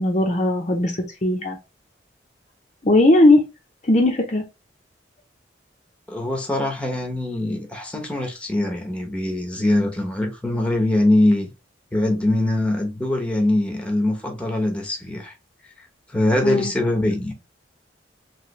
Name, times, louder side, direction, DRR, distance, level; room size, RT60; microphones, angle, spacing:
voice 1, 0.0-1.6 2.8-3.4 3.9-4.4 16.4-16.7, left 1 dB, 40° left, 0.6 m, -18 dB
voice 2, 6.1-11.5 11.9-15.3 16.1-17.3, left 1 dB, 5° left, 0.9 m, -22 dB
3.2 x 3.0 x 2.9 m
head